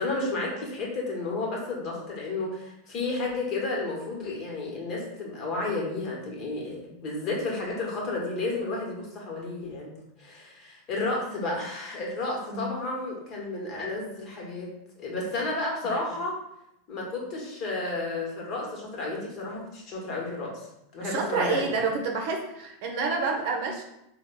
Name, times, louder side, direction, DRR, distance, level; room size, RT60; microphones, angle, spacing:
voice 1, 0.0-16.3 16.9-20.7 20.9-21.7, left 2 dB, 45° left, -2 dB, 1.3 m, -32 dB
voice 2, 21.0-23.8, right 4 dB, 60° right, 2 dB, 0.7 m, -29 dB
3.6 x 2.3 x 3.7 m, 0.82 s
hypercardioid pair, 95°, 0 cm